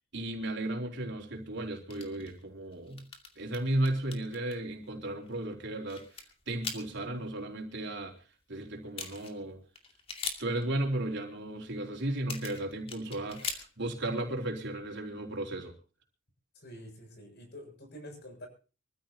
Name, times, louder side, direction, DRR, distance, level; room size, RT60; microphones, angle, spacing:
voice 1, 0.1-3.0 3.4-6.0 6.5-8.1 8.5-9.6 10.4-15.8, right 1 dB, 60° right, 2 dB, 3.8 m, -34 dB
sound 1, 1.9-2.4 2.7-4.6 5.3-5.4 5.6-7.0 8.6-8.7 8.9-9.4 9.8-10.6 12.2-13.9, left 4 dB, 30° left, 2.5 m, -41 dB
voice 2, 16.6-18.5, equal, 55° left, 4 dB, 7.1 m, -47 dB
24.5 x 14.5 x 2.9 m, 0.35 s
head